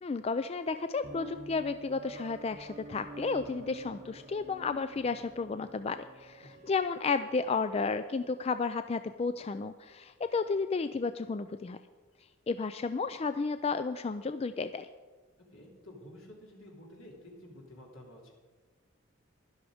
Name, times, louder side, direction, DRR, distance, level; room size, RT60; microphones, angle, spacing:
voice 1, 0.0-11.8 12.5-14.9, left 4 dB, 30° left, 11 dB, 0.3 m, -32 dB
sound 1, 1.0-8.4, right 2 dB, 35° right, 0.7 m, -49 dB
voice 2, 15.5-18.3, left 1 dB, 75° left, 0 dB, 3.2 m, -51 dB
12.0 x 11.0 x 5.0 m, 1.4 s
head